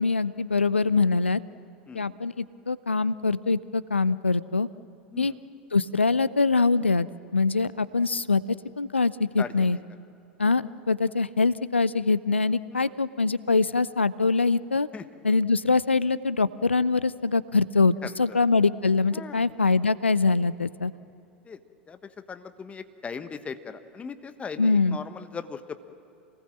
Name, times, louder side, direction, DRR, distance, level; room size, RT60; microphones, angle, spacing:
voice 1, 0.0-1.4 1.9-4.7 5.2-5.3 5.7-9.8 10.4-14.9 15.2-20.9 24.6-25.0, left 4 dB, 90° left, 18 dB, 0.5 m, -24 dB
voice 2, 9.4-9.8 12.7-13.0 14.9-15.0 18.0-18.4 19.1-19.4 21.4-21.6 21.9-22.0 22.3-25.8, left 5 dB, 20° left, 10 dB, 1.3 m, -39 dB
27.5 x 19.0 x 7.5 m, 2.9 s
figure-of-eight pair, 85°, 6 cm